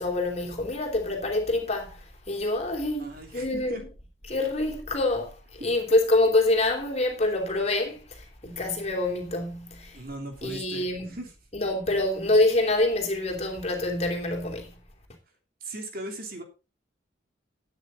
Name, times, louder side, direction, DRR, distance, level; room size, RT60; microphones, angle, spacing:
voice 1, 0.0-2.0 2.3-3.8 4.3-5.3 5.6-10.0 10.4-11.2 11.5-14.8, left 2 dB, 35° left, 3.1 m, -26 dB
voice 2, 3.0-3.8 9.9-11.3 15.6-16.4, right 1 dB, 50° right, 3.1 m, -38 dB
13.0 x 9.3 x 3.9 m
head